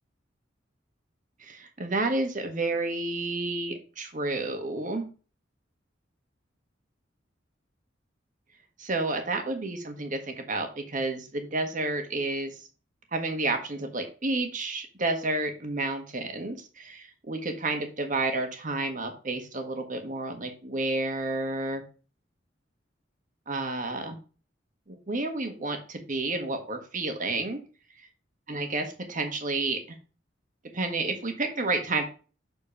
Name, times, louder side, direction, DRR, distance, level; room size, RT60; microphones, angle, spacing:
voice 1, 1.4-5.1 8.8-12.6 13.1-21.8 23.5-24.2 24.9-27.6 28.5-30.0 30.7-32.0, right 2 dB, 45° right, 5 dB, 1.5 m, -30 dB
6.9 x 4.3 x 5.5 m, 0.36 s
head